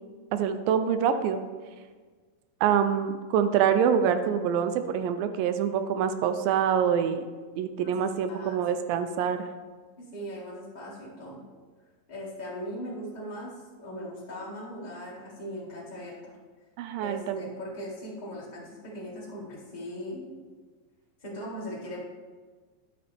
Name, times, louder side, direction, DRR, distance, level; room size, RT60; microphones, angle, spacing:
voice 1, 0.3-1.4 2.6-7.3 7.6-9.5 16.8-17.4, right 8 dB, 85° right, 9 dB, 2.3 m, -25 dB
voice 2, 7.8-8.8 10.0-11.4 12.1-16.3 17.0-20.3 21.2-22.0, equal, 20° left, -6 dB, 1.3 m, -39 dB
12.0 x 6.5 x 3.4 m, 1.4 s
omnidirectional pair, 4.1 m